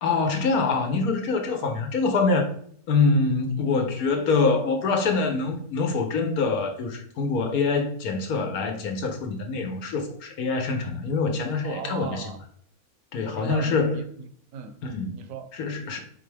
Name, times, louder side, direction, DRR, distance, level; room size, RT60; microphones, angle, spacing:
voice 1, 0.0-2.5 2.9-12.2 13.1-14.0 14.8-15.1 15.5-16.0, left 4 dB, 85° left, 1.2 m, -25 dB
voice 2, 1.5-1.8 11.6-12.4 13.2-14.8 15.1-15.5, right 6 dB, 70° right, 1.0 m, -38 dB
4.5 x 3.5 x 3.2 m
omnidirectional pair, 1.5 m